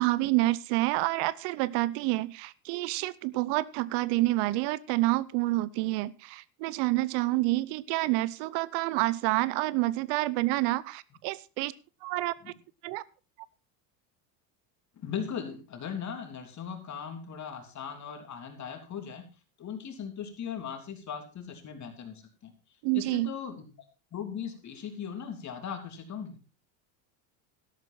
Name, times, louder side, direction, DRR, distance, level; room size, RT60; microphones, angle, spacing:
voice 1, 0.0-11.7 12.0-12.3 12.8-13.0 22.8-23.3, right 19 dB, 65° right, 20 dB, 0.7 m, -28 dB
voice 2, 15.0-19.3 19.6-22.5 22.9-23.7 24.1-26.4, left 7 dB, 40° left, 6 dB, 3.2 m, -38 dB
12.5 x 11.0 x 4.3 m, 0.33 s
supercardioid pair, 110°, 45 cm